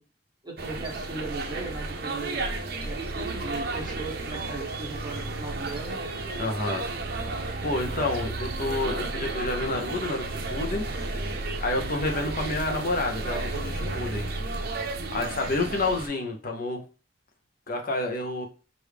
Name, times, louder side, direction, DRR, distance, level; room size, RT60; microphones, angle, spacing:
voice 1, 0.4-2.4 2.8-6.0, right 3 dB, 25° right, -1 dB, 1.3 m, -37 dB
sound 1, 0.6-16.1, right 2 dB, 55° right, 0.7 m, -32 dB
voice 2, 6.4-6.8 7.6-10.8 11.6-14.2 15.1-16.8 17.7-18.5, left 2 dB, 50° left, 2 dB, 0.8 m, -29 dB
4.8 x 2.6 x 3.4 m, 0.35 s
head